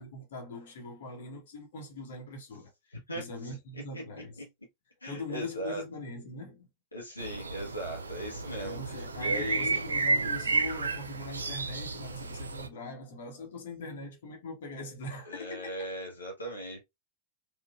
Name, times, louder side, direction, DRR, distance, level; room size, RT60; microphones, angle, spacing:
voice 1, 0.0-4.4 5.1-6.7 8.6-15.9, left 2 dB, 60° left, 1.2 m, -42 dB
voice 2, 3.1-3.5 3.9-4.0 4.4-4.5 5.0-5.8 6.9-9.8 15.2-16.8, right 1 dB, 85° left, 1.0 m, -38 dB
sound 1, 7.2-12.7, right 3 dB, 75° right, 0.4 m, -32 dB
3.8 x 2.5 x 2.5 m
figure-of-eight pair, 90°, 0 cm